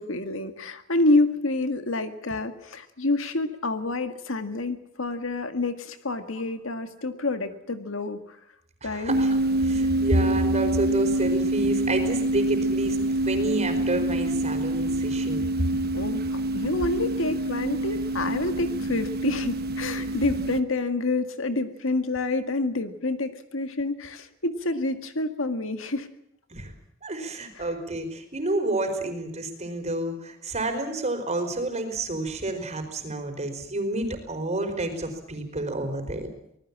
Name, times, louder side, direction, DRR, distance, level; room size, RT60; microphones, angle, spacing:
voice 1, 0.0-8.4 8.8-9.1 15.9-26.1 27.6-27.7, left 2 dB, 70° left, 8 dB, 1.9 m, -28 dB
voice 2, 8.8-13.0 13.2-15.5 26.5-26.7 27.0-36.3, right 2 dB, 35° right, 6 dB, 4.8 m, -29 dB
sound 1, 9.1-20.6, right 1 dB, 50° right, 1.4 m, -26 dB
25.5 x 19.5 x 7.5 m, 0.76 s
head